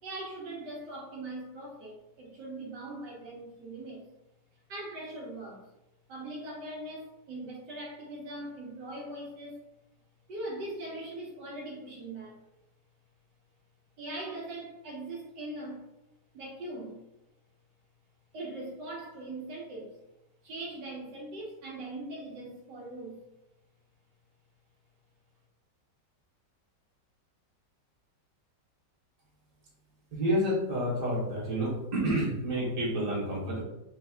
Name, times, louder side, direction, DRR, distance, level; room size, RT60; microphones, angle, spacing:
voice 1, 0.0-4.0 4.7-5.6 6.1-9.7 10.3-12.4 14.0-15.9 16.3-17.0 18.3-19.9 20.4-23.2, right 2 dB, 75° right, -2 dB, 1.7 m, -41 dB
voice 2, 30.1-33.6, equal, 25° right, -5 dB, 1.2 m, -29 dB
3.4 x 3.4 x 3.5 m, 0.92 s
omnidirectional pair, 1.9 m